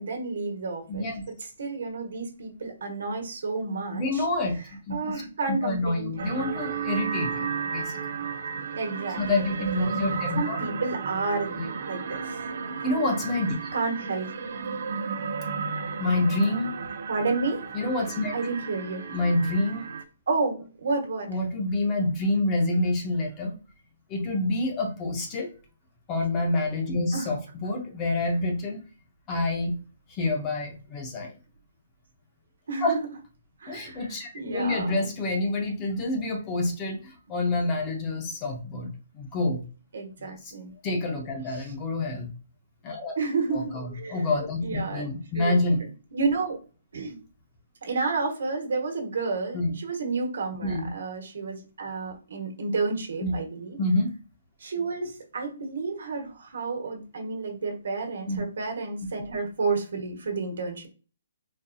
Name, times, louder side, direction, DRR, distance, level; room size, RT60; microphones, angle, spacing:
voice 1, 0.0-4.3 4.9-6.1 8.7-11.5 11.8-12.4 13.7-14.3 17.1-17.6 18.3-19.0 20.3-21.4 27.1-27.3 32.7-33.0 33.6-35.1 39.9-40.7 41.5-41.7 43.2-44.3 44.6-46.6 46.9-47.2 47.8-53.8 54.6-60.9, right 4 dB, 70° right, 3 dB, 1.1 m, -31 dB
voice 2, 0.9-1.2 3.9-4.6 4.9-5.0 5.5-8.0 9.2-10.6 11.5-11.6 12.8-13.5 16.0-16.7 17.7-18.3 19.1-19.9 21.3-23.5 24.1-25.5 26.1-28.8 29.3-29.8 30.1-31.4 32.8-33.0 33.7-39.6 40.2-40.5 40.8-42.3 42.8-43.2 43.5-45.8 49.5-49.7 50.6-50.9 53.2-53.4 53.8-54.1 58.3-58.4, left 2 dB, 15° left, 2 dB, 0.6 m, -27 dB
sound 1, 6.2-20.0, right 5 dB, 50° right, 0.5 m, -33 dB
4.0 x 2.5 x 2.2 m, 0.35 s
hypercardioid pair, 175°, 0 cm